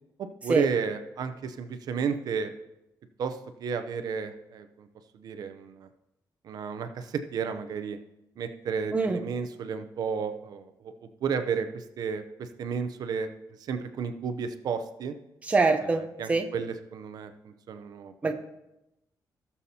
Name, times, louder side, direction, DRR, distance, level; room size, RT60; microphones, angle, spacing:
voice 1, 0.4-2.5 3.2-4.9 5.1-5.9 6.4-8.0 8.4-13.3 13.6-15.1 16.2-18.1, right 6 dB, 65° right, 9 dB, 0.7 m, -32 dB
voice 2, 15.4-16.0 16.3-16.5 18.2-18.3, right 3 dB, 20° right, 5 dB, 0.7 m, -24 dB
17.0 x 7.0 x 2.8 m, 0.90 s
wide cardioid pair, 170°, 7 cm